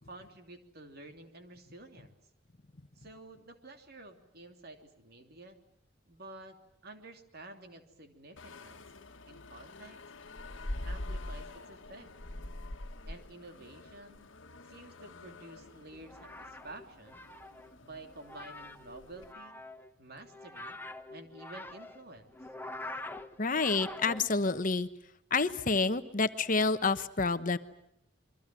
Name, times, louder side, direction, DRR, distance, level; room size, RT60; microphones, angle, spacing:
voice 1, 0.0-2.2 3.0-5.6 6.1-6.6 6.8-8.8 9.3-10.0 10.8-12.1 13.1-14.3 14.6-17.3 17.8-19.6 20.0-20.8 21.1-22.3, right 2 dB, 50° right, 5 dB, 3.2 m, -50 dB
sound 1, 8.4-19.3, left 1 dB, 70° left, 1.6 m, -45 dB
sound 2, 15.9-24.6, left 2 dB, 10° left, 1.1 m, -46 dB
voice 2, 23.4-24.9 25.3-27.6, left 4 dB, 40° left, 11 dB, 1.1 m, -28 dB
27.5 x 23.5 x 7.7 m, 0.72 s
head